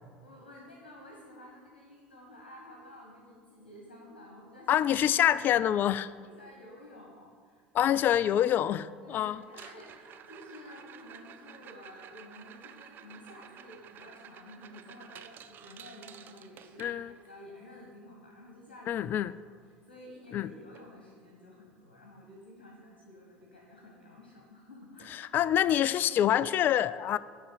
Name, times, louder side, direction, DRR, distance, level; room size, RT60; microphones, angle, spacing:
voice 1, 0.0-5.4 6.2-7.9 9.0-19.0 19.4-19.5 19.8-25.5, left 1 dB, 70° left, -1 dB, 1.6 m, -51 dB
voice 2, 4.7-6.1 7.7-9.4 16.8-17.1 18.9-19.3 20.3-20.5 25.3-27.2, left 11 dB, 40° left, 18 dB, 0.3 m, -26 dB
sound 1, 9.4-17.4 19.7-19.8 20.0-20.3 20.7-20.8 21.4-21.5 23.4-23.5, right 9 dB, 40° right, 0.6 m, -51 dB
12.0 x 4.1 x 7.3 m, 2.1 s
figure-of-eight pair, 65°, 5 cm